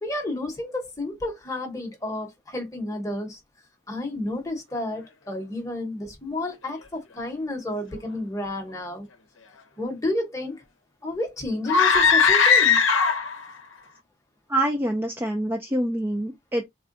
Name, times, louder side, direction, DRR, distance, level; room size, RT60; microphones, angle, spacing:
voice 1, 0.0-3.4 3.9-9.1 9.8-10.6 11.0-12.8, left 1 dB, 15° left, 0.8 m, -31 dB
sound 1, 11.6-13.4, left 6 dB, 70° left, 0.7 m, -18 dB
voice 2, 14.5-16.6, right 1 dB, 10° right, 0.3 m, -26 dB
3.5 x 2.2 x 2.5 m
head